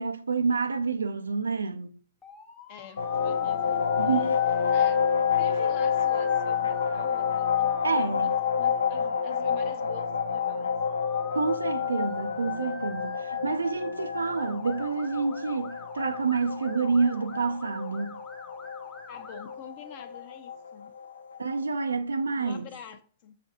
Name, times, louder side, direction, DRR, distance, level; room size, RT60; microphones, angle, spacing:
voice 1, 0.0-2.0 4.0-4.3 7.8-8.4 11.3-18.2 21.4-22.7, right 4 dB, 90° right, 0.4 m, -28 dB
Motor vehicle (road) / Siren, 2.2-19.5, left 3 dB, 20° left, 1.1 m, -48 dB
voice 2, 2.7-4.3 4.7-5.0 5.4-10.7 19.1-20.9 22.4-23.3, left 7 dB, 50° left, 0.7 m, -46 dB
sound 1, 3.0-21.6, left 7 dB, 85° left, 0.4 m, -28 dB
7.1 x 2.5 x 2.6 m
hypercardioid pair, 115°, 0 cm